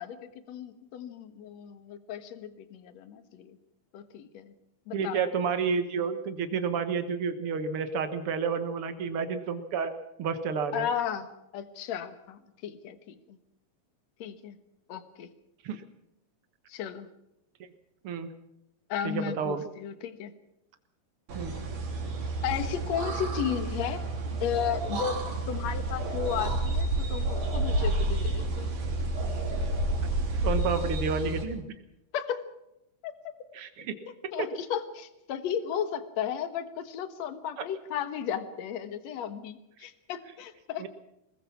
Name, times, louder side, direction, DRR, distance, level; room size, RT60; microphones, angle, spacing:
voice 1, 0.0-3.6 3.9-4.5 4.9-5.2 10.7-11.3 11.5-13.4 14.2-14.6 14.9-15.3 16.7-17.1 18.9-20.3 22.4-24.0 24.4-28.7 32.1-32.4 33.0-33.3 34.3-40.9, left 9 dB, 60° left, 11 dB, 1.9 m, -34 dB
voice 2, 4.9-9.9 10.2-10.9 15.6-15.8 18.0-18.3 19.0-19.6 21.3-21.5 30.4-31.6 33.5-33.9 34.4-34.5 40.8-40.9, right 5 dB, 80° right, 9 dB, 1.2 m, -30 dB
sound 1, 21.3-31.4, right 2 dB, 55° right, 4.8 m, -30 dB
23.5 x 20.5 x 5.9 m, 0.86 s
omnidirectional pair, 4.6 m